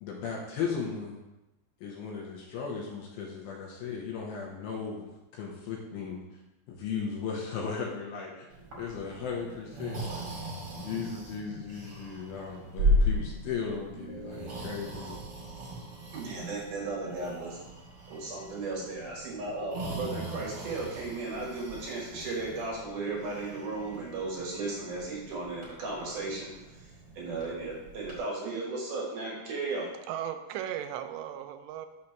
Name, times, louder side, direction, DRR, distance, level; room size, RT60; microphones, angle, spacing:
voice 1, 0.0-1.2 1.8-6.2 6.7-8.5 8.8-10.3 10.8-15.2, left 6 dB, 75° left, -1 dB, 2.5 m, -36 dB
Breathing, 8.5-28.2, equal, 40° right, 2.7 m, -36 dB
sound 1, 10.4-12.0 14.0-17.1 19.5-20.9, left 2 dB, 45° left, 2.3 m, -49 dB
voice 2, 10.5-11.1 11.8-11.9 14.6-14.7 16.1-17.6 18.1-26.5 26.8-26.9 27.2-29.9, right 3 dB, 60° right, -4 dB, 2.5 m, -35 dB
voice 3, 30.1-31.9, right 10 dB, 85° right, 8 dB, 2.8 m, -36 dB
6.5 x 4.3 x 5.8 m, 1.0 s
omnidirectional pair, 4.9 m